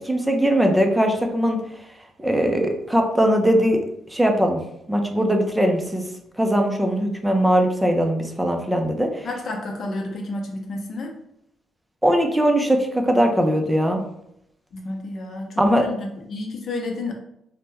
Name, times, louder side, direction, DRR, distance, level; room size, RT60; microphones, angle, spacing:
voice 1, 0.0-1.6 2.2-3.8 4.1-4.6 4.9-6.1 6.4-9.3 12.0-14.0 15.6-15.9, equal, 10° right, 3 dB, 0.5 m, -20 dB
voice 2, 9.2-11.1 14.7-17.1, left 2 dB, 55° left, 2 dB, 0.7 m, -31 dB
2.8 x 2.1 x 3.4 m, 0.78 s
cardioid pair, 90°, 0 cm